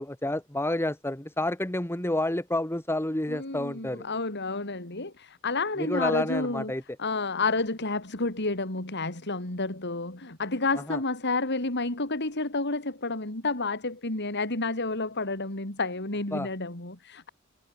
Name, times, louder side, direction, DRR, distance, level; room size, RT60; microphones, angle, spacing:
voice 1, 0.0-4.0 5.8-6.8 10.9-11.0 16.3-16.5, left 1 dB, 10° left, 2.1 m, -29 dB
voice 2, 3.3-6.7 7.0-17.3, left 3 dB, 55° left, 4.1 m, -30 dB
head